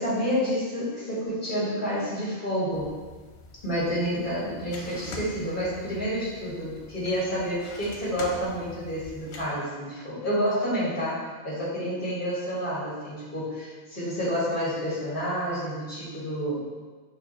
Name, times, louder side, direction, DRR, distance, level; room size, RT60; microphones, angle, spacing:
voice 1, 0.0-2.9 3.6-13.5 13.9-16.6, equal, 55° left, -9 dB, 1.8 m, -29 dB
sound 1, 2.7-9.4, left 3 dB, 90° left, 0.9 m, -44 dB
6.0 x 3.0 x 2.9 m, 1.4 s
omnidirectional pair, 1.1 m